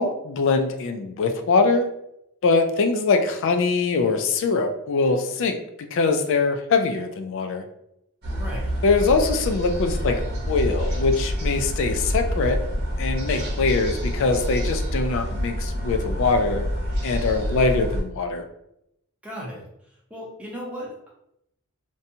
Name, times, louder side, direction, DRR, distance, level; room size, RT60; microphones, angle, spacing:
voice 1, 0.0-1.9 2.4-7.6 8.8-10.2 10.5-12.6 13.0-16.6 17.0-18.5, left 4 dB, 55° left, 6 dB, 0.3 m, -22 dB
sound 1, 8.2-18.0, equal, 45° right, 0.8 m, -27 dB
voice 2, 8.3-8.7 19.2-19.6 20.1-21.1, equal, 5° right, -5 dB, 0.7 m, -36 dB
2.6 x 2.2 x 2.7 m, 0.79 s
head